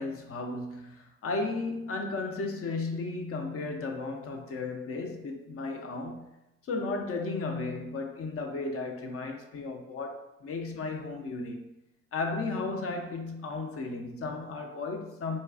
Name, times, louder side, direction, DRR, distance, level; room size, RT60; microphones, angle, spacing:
voice 1, 0.0-6.3 6.6-11.6 12.1-15.4, left 3 dB, 35° left, 0.5 m, -34 dB
4.0 x 2.3 x 2.4 m
hypercardioid pair, 55°, 40 cm